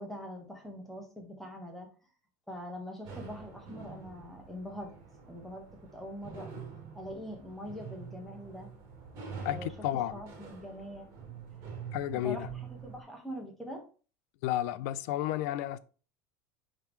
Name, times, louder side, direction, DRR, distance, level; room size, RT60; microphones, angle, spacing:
voice 1, 0.0-1.9 2.5-4.9 5.3-6.5 6.9-8.7 9.5-9.7 10.1-11.1 11.5-11.7 12.1-12.4 12.7-13.8, equal, 5° left, 1.4 m, -43 dB
sound 1, 3.0-13.0, right 5 dB, 40° right, 2.9 m, -46 dB
voice 2, 9.4-10.2 11.9-12.4 14.4-15.8, left 13 dB, 70° left, 0.5 m, -32 dB
10.5 x 3.8 x 3.2 m
cardioid pair, 170°, 9 cm